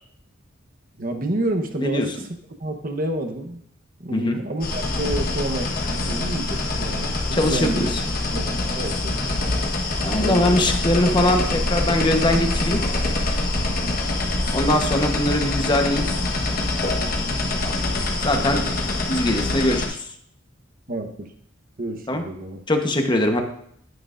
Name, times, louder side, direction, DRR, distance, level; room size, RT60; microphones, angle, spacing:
voice 1, 1.0-2.3 2.6-3.6 4.0-7.9 8.3-9.1 10.2-10.6 13.7-14.0 20.9-21.3 21.8-22.6, right 1 dB, 45° right, 5 dB, 1.0 m, -29 dB
sound 1, 4.6-19.9, left 2 dB, 45° left, 1.3 m, -24 dB
voice 2, 7.3-7.9 10.0-12.8 14.5-16.0 18.2-18.6 19.1-20.0 22.1-22.2 22.7-23.4, left 1 dB, 25° left, 4 dB, 1.0 m, -21 dB
10.5 x 9.4 x 2.5 m, 0.68 s
head